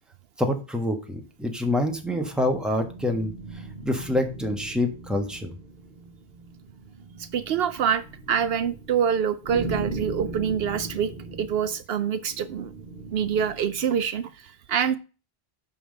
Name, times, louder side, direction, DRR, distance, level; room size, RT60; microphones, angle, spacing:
voice 1, 0.4-3.3 3.8-5.5, left 1 dB, ahead, 3 dB, 1.2 m, -26 dB
sound 1, 1.4-14.0, right 2 dB, 55° right, 1.6 m, -39 dB
voice 2, 7.2-12.7 13.1-15.0, right 8 dB, 70° right, 11 dB, 0.8 m, -26 dB
5.6 x 5.5 x 6.5 m, 0.34 s
omnidirectional pair, 1.1 m